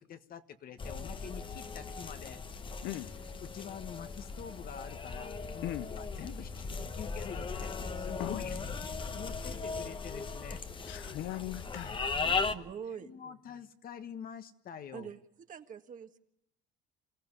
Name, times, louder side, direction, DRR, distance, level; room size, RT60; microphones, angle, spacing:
voice 1, 0.0-2.4 3.4-6.5 6.8-10.6 12.1-12.7 12.9-15.1, left 8 dB, 50° left, 1.5 m, -46 dB
sound 1, 0.8-12.6, left 4 dB, 25° left, 1.1 m, -38 dB
voice 2, 2.8-3.1 5.6-5.9 8.2-8.7 10.9-12.1, left 15 dB, 75° left, 0.8 m, -39 dB
voice 3, 12.2-13.4 14.9-15.2 15.5-16.2, right 7 dB, 40° right, 1.8 m, -45 dB
28.0 x 16.0 x 9.8 m
cardioid pair, 115°, 20 cm